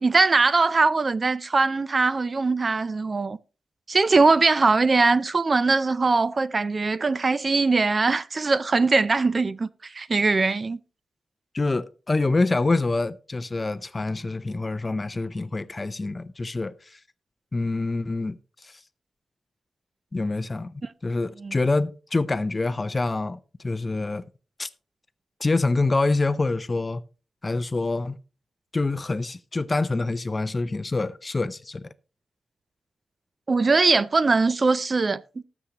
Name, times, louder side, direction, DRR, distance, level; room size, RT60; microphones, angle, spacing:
voice 1, 0.0-3.4 3.9-9.7 9.9-10.8 21.4-21.5 33.5-35.4, right 3 dB, 35° right, 0.4 m, -21 dB
voice 2, 11.5-17.0 17.5-18.8 20.1-20.7 21.0-24.2 24.6-24.7 25.4-27.0 27.4-28.2 28.7-31.9, left 3 dB, 25° left, 0.5 m, -26 dB
19.5 x 7.1 x 2.9 m
wide cardioid pair, 150°, 0 cm